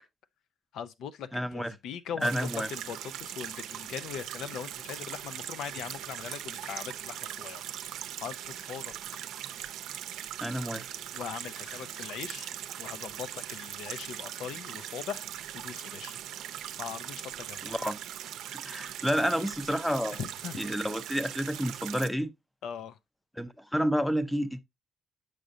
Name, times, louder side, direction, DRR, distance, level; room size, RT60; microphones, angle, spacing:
voice 1, 0.7-7.6 7.9-8.9 11.1-12.5 12.8-15.3 15.5-16.2 16.5-17.8 20.1-20.6 22.6-23.0, left 8 dB, 80° left, 0.6 m, -40 dB
voice 2, 1.3-1.7 2.2-2.7 10.4-10.9 17.6-18.0 18.5-20.2 20.6-22.3 23.4-24.6, equal, 5° left, 0.6 m, -30 dB
sound 1, 2.2-22.1, right 11 dB, 85° right, 0.5 m, -40 dB
7.7 x 5.0 x 2.6 m
cardioid pair, 90°, 0 cm